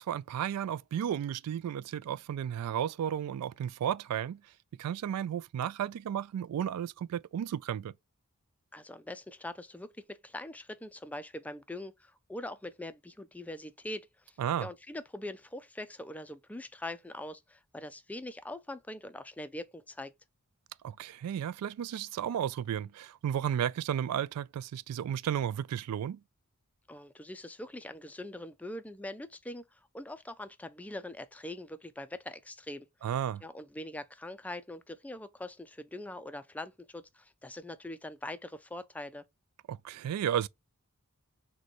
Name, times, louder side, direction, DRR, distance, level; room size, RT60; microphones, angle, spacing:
voice 1, 0.0-4.4 4.8-7.9 14.4-14.7 20.8-26.2 33.0-33.4 39.7-40.5, right 9 dB, 80° right, 0.3 m, -33 dB
voice 2, 8.7-20.1 26.9-32.9 33.4-39.2, left 1 dB, 5° left, 0.3 m, -43 dB
6.3 x 2.2 x 2.9 m
head